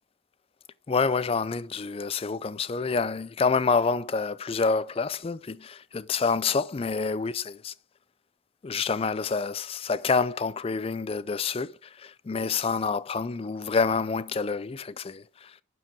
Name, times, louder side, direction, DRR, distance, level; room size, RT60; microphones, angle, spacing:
voice 1, 0.9-7.7 8.6-15.6, left 4 dB, 30° left, 0.3 m, -27 dB
11.5 x 4.7 x 4.5 m
head